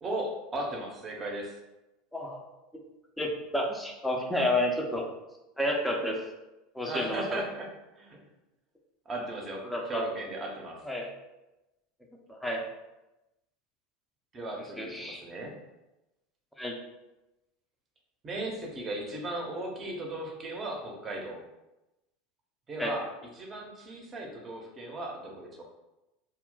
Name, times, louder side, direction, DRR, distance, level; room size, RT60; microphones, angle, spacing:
voice 1, 0.0-1.6 6.8-7.7 7.9-8.2 9.1-10.8 14.3-15.6 18.2-21.4 22.7-23.1 23.3-25.6, right 1 dB, 30° right, 0 dB, 0.8 m, -37 dB
voice 2, 3.2-5.0 5.6-6.2 6.7-7.4 9.7-10.0 10.9-11.1 12.3-12.6 14.8-15.2 16.6-16.7 22.8-22.9, left 1 dB, 5° left, -1 dB, 0.6 m, -30 dB
2.3 x 2.1 x 3.8 m, 0.98 s
hypercardioid pair, 80°, 0 cm